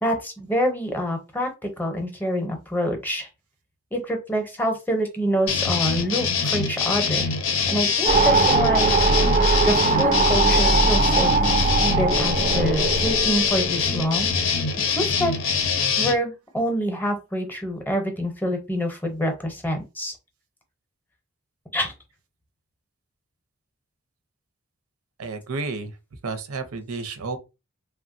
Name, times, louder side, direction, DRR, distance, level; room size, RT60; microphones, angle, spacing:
voice 1, 0.0-3.3 3.9-7.3 7.7-8.9 9.6-14.3 15.0-15.4 16.0-20.1 21.7-21.9, equal, 10° left, 0.6 m, -26 dB
sound 1, 5.5-16.1, left 5 dB, 65° left, 0.5 m, -24 dB
sound 2, 8.1-14.5, right 3 dB, 35° right, 0.3 m, -21 dB
voice 2, 25.2-26.0 26.2-27.4, right 3 dB, 85° right, 0.6 m, -31 dB
3.1 x 2.1 x 2.5 m
head